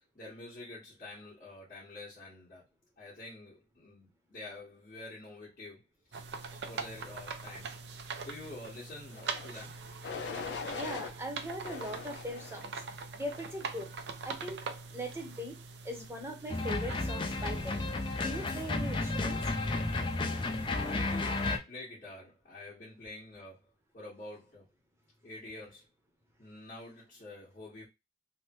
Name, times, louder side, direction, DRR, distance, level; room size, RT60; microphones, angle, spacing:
voice 1, 0.1-2.6 3.0-5.8 6.1-6.2 6.6-7.7 8.2-9.8 20.8-24.7 25.2-25.8 26.4-27.9, left 2 dB, 50° left, 1.6 m, -47 dB
sound 1, 6.1-21.6, right 4 dB, 75° right, 0.5 m, -44 dB
sound 2, 9.1-9.5 10.0-11.1 11.6-12.7 13.2-13.7, left 5 dB, 80° left, 0.5 m, -41 dB
voice 2, 10.4-12.7 13.1-13.9 14.2-14.6 14.9-15.5 15.8-17.8 18.2-19.4, equal, 15° right, 0.8 m, -40 dB
sound 3, 16.5-21.6, left 2 dB, 30° left, 0.5 m, -32 dB
3.3 x 2.1 x 3.0 m
head